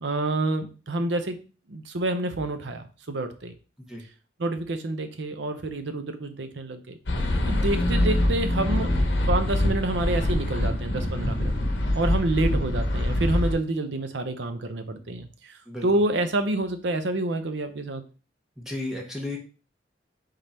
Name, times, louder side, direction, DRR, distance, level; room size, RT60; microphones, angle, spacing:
voice 1, 0.0-1.4 1.7-3.5 4.4-7.0 7.5-11.5 11.9-18.0, right 2 dB, 70° right, 8 dB, 0.7 m, -28 dB
sound 1, 7.1-13.5, left 1 dB, 70° left, 0.9 m, -24 dB
voice 2, 18.6-19.4, left 2 dB, 5° right, -1 dB, 0.9 m, -33 dB
3.7 x 3.4 x 4.2 m, 0.35 s
head